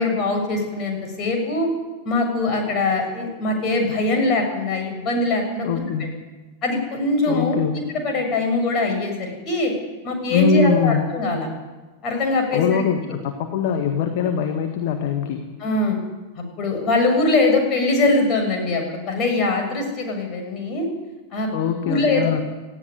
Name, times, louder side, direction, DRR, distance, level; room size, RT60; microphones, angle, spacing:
voice 1, 0.0-1.7 2.0-5.7 6.6-7.6 7.9-9.7 10.0-11.5 12.0-12.8 15.6-16.0 16.4-20.9 21.3-21.5 21.8-22.4, left 2 dB, 35° left, 3 dB, 6.9 m, -22 dB
voice 2, 5.6-6.2 7.3-7.7 10.3-11.1 12.5-15.5 21.5-22.4, left 6 dB, 50° left, 6 dB, 1.8 m, -22 dB
18.5 x 14.5 x 9.7 m, 1.2 s
figure-of-eight pair, 90°, 0 cm